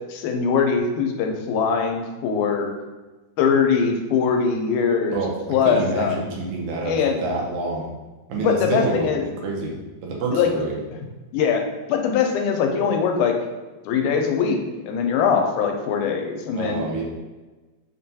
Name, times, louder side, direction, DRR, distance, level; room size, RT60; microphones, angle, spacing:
voice 1, 0.1-2.7 3.4-5.2 5.5-6.2 6.9-7.2 8.4-9.2 10.3-10.5 11.3-11.6 11.9-13.4 13.9-14.6 14.9-16.8, left 6 dB, 85° left, 3 dB, 2.0 m, -21 dB
voice 2, 5.7-7.9 8.3-9.1 9.4-9.7 10.0-10.7 16.6-17.0, right 3 dB, 80° right, -2 dB, 2.1 m, -27 dB
5.4 x 2.2 x 2.7 m, 1.2 s
omnidirectional pair, 3.5 m